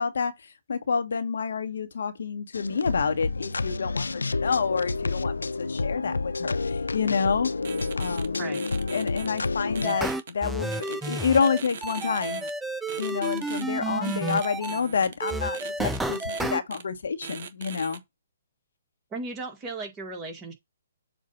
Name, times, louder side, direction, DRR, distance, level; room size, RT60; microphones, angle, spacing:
voice 1, 0.0-7.5 8.0-8.4 8.9-12.4 13.0-18.0, left 5 dB, 70° left, 1.2 m, -28 dB
sound 1, 2.5-9.9, left 3 dB, 90° left, 0.4 m, -29 dB
sound 2, 7.6-9.4 9.7-10.3 10.7-12.5 12.9-13.6 14.0-16.4 16.7-16.8 17.2-18.0, right 7 dB, 55° right, 1.0 m, -41 dB
sound 3, 9.8-14.8 15.2-16.6, right 2 dB, 5° right, 0.5 m, -31 dB
voice 2, 19.1-20.5, right 3 dB, 20° right, 1.8 m, -36 dB
7.1 x 2.6 x 5.3 m
hypercardioid pair, 140°, 0 cm